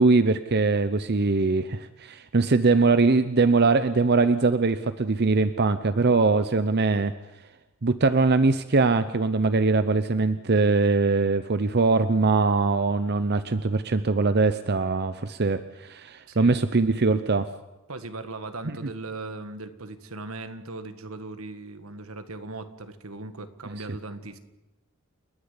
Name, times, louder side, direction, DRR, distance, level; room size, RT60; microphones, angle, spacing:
voice 1, 0.0-7.1 7.8-17.5, right 3 dB, 50° right, 12 dB, 0.7 m, -22 dB
voice 2, 16.3-16.6 17.9-24.4, right 2 dB, 80° right, 10 dB, 1.8 m, -38 dB
29.5 x 10.5 x 9.8 m, 1.0 s
head